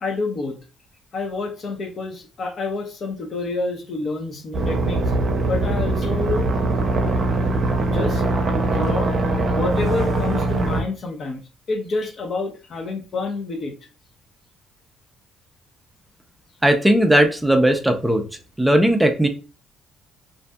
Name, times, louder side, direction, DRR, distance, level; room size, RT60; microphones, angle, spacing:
voice 1, 0.0-0.6 1.1-5.1 5.5-6.5 7.9-8.2 8.5-9.1 9.5-11.4 11.7-13.7, left 3 dB, 50° left, 3 dB, 0.7 m, -28 dB
sound 1, 4.5-10.8, right 2 dB, 50° right, 0.6 m, -21 dB
voice 2, 16.6-18.2 18.6-19.3, right 1 dB, 5° right, 5 dB, 0.4 m, -17 dB
2.6 x 2.5 x 2.2 m, 0.33 s
supercardioid pair, 60°, 0 cm